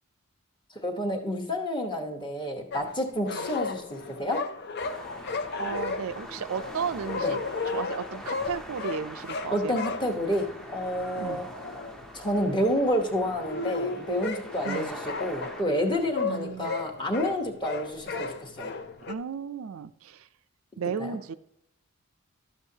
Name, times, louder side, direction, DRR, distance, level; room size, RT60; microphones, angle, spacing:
voice 1, 0.8-4.4 7.2-7.3 9.5-11.5 12.1-18.7 21.0-21.2, equal, 20° left, 2 dB, 1.0 m, -29 dB
sound 1, 2.7-19.1, left 4 dB, 50° left, 0.5 m, -35 dB
sound 2, 4.8-15.6, equal, 5° left, 0.6 m, -44 dB
voice 2, 5.6-7.4 7.7-9.8 11.2-11.4 14.6-14.9 16.2-16.7 19.1-20.3 20.8-21.3, right 6 dB, 70° right, 13 dB, 0.4 m, -34 dB
12.0 x 7.2 x 2.8 m, 0.78 s
head